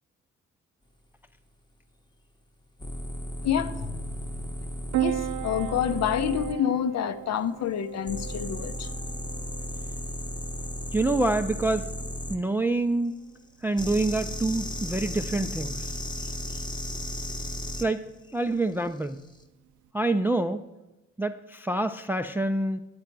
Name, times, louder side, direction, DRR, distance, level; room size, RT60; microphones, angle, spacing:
sound 1, 2.8-6.5 8.1-12.4 13.8-17.9 19.1-19.3, equal, 15° left, 0.9 m, -35 dB
voice 1, 3.4-4.0 5.0-8.9, left 9 dB, 60° left, 0.6 m, -28 dB
Piano, 4.9-19.9, right 13 dB, 75° right, 0.5 m, -38 dB
voice 2, 10.9-11.9 12.3-13.2 13.6-15.9 17.8-18.1 18.3-19.2 19.9-20.6 21.2-22.8, right 2 dB, 5° right, 0.3 m, -26 dB
8.9 x 8.5 x 4.5 m
cardioid pair, 90°, 30 cm